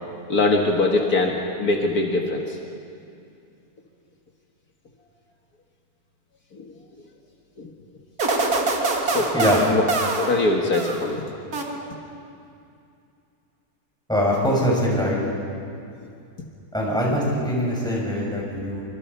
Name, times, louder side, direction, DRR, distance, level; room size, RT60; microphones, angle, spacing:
voice 1, 0.3-2.6 6.5-6.7 7.6-7.7 9.1-9.3 9.7-9.8 10.2-11.5, left 2 dB, 70° left, 1 dB, 2.2 m, -22 dB
sound 1, 8.2-11.2 11.5-12.2, right 3 dB, 70° right, 2.4 m, -25 dB
voice 2, 14.1-15.2 16.7-18.8, equal, ahead, -3 dB, 6.3 m, -22 dB
26.0 x 25.5 x 5.6 m, 2.5 s
omnidirectional pair, 1.7 m